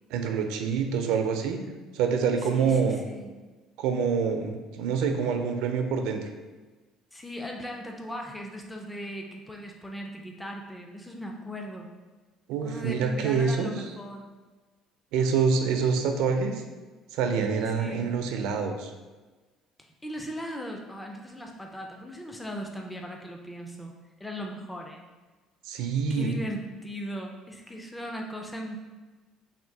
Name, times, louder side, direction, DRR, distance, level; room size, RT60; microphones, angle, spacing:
voice 1, 0.1-1.6 1.9-3.0 3.8-6.2 12.5-13.7 15.1-16.6 17.1-18.9 25.7-26.3, right 6 dB, 80° right, 5 dB, 0.5 m, -26 dB
voice 2, 2.4-3.4 7.1-11.9 12.6-14.3 17.7-18.1 19.8-23.9 24.2-25.0 26.1-28.8, equal, 5° left, 1 dB, 0.3 m, -38 dB
3.6 x 2.6 x 4.4 m, 1.3 s
cardioid pair, 170°, 0 cm